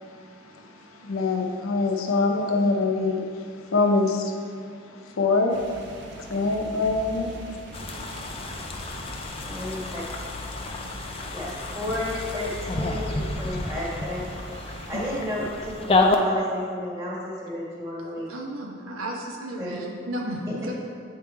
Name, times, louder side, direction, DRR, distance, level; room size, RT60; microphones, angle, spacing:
voice 1, 0.1-4.6 4.9-5.7 6.2-7.6 9.2-9.3 14.9-15.0, left 3 dB, 85° left, 2 dB, 0.7 m, -25 dB
sound 1, 5.5-15.2, equal, 55° right, 0.6 m, -40 dB
sound 2, 7.7-16.2, left 3 dB, 25° left, 0.4 m, -30 dB
voice 2, 9.5-10.0 11.3-14.3 14.9-18.3 19.6-19.8, left 1 dB, 15° right, -6 dB, 1.3 m, -32 dB
voice 3, 18.3-20.7, right 1 dB, 85° right, -1 dB, 1.0 m, -33 dB
8.4 x 3.6 x 4.4 m, 2.2 s
head